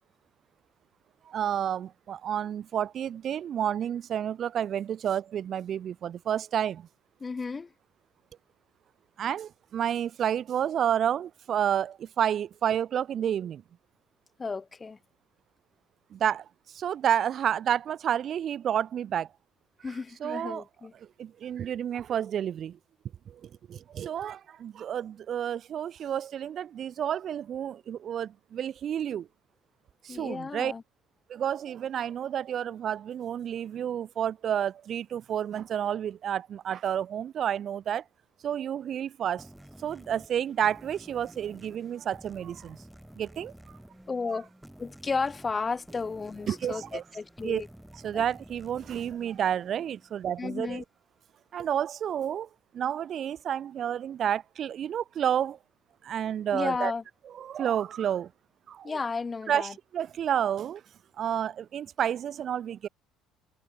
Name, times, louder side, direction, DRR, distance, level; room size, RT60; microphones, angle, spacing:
voice 1, 1.3-6.9 9.2-13.6 16.1-19.3 20.2-20.6 21.2-22.8 23.3-29.3 30.0-30.7 31.3-38.0 38.4-39.5 39.8-42.8 43.2-43.5 44.3-44.4 46.5-47.0 47.4-47.6 48.0-50.8 51.5-52.5 52.7-55.6 56.0-56.9 57.4-58.3 58.7-59.0 59.5-60.8 61.2-62.9, right 9 dB, 50° right, 0.6 m, -30 dB
voice 2, 7.2-7.7 14.4-15.0 19.8-20.9 30.1-30.8 44.1-44.5 44.8-47.7 48.1-48.2 50.4-50.8 56.5-57.0 58.8-59.7, left 4 dB, 25° left, 0.7 m, -33 dB
sound 1, 39.4-50.6, right 1 dB, 5° right, 5.1 m, -51 dB
cardioid pair, 105°, 0 cm